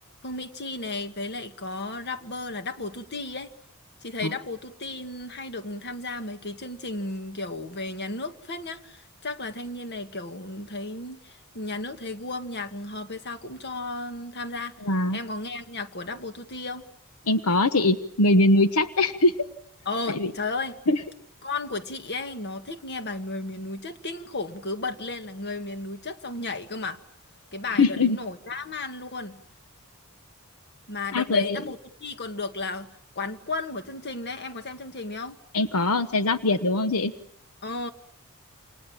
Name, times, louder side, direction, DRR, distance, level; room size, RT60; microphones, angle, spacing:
voice 1, 0.2-3.5 4.0-14.8 15.1-16.8 19.9-20.8 21.4-27.0 27.5-29.4 30.9-35.4 37.6-37.9, left 3 dB, 50° left, 1.9 m, -34 dB
voice 2, 14.8-15.2 17.3-19.3 20.1-20.3 20.9-21.0 27.8-28.2 31.1-31.6 35.5-37.1, left 2 dB, 85° left, 1.1 m, -22 dB
29.0 x 27.5 x 7.4 m
head